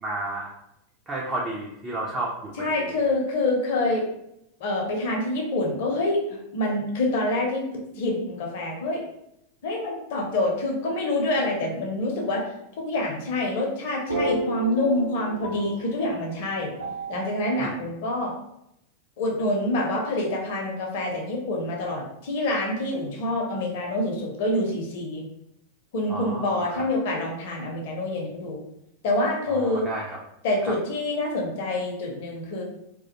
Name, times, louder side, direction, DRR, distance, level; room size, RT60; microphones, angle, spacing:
voice 1, 0.0-0.5 1.1-3.0 17.6-17.8 26.1-26.9 29.5-30.2 30.6-30.7, right 2 dB, 20° right, -3 dB, 0.4 m, -32 dB
voice 2, 2.6-4.0 4.6-6.2 6.5-7.6 8.0-9.0 9.6-12.4 12.8-16.7 17.1-18.3 19.2-25.2 25.9-28.6 29.0-29.9 30.4-32.6, left 1 dB, 50° left, -1 dB, 0.6 m, -26 dB
sound 1, 14.1-17.6, right 2 dB, 85° right, 0.5 m, -32 dB
2.3 x 2.1 x 2.7 m, 0.81 s
figure-of-eight pair, 90°, 0 cm